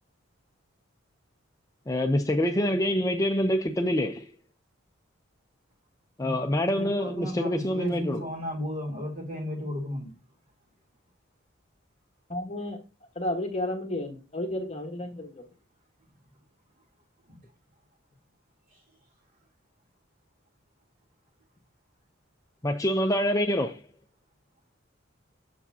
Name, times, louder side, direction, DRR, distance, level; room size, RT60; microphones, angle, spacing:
voice 1, 1.9-4.3 6.2-8.2 22.6-23.8, equal, 15° left, 0.5 m, -26 dB
voice 2, 6.2-10.1 17.3-17.4, equal, 40° right, 3.2 m, -34 dB
voice 3, 12.3-12.8 13.1-15.4, left 1 dB, 30° left, 1.3 m, -32 dB
8.5 x 7.1 x 2.7 m
head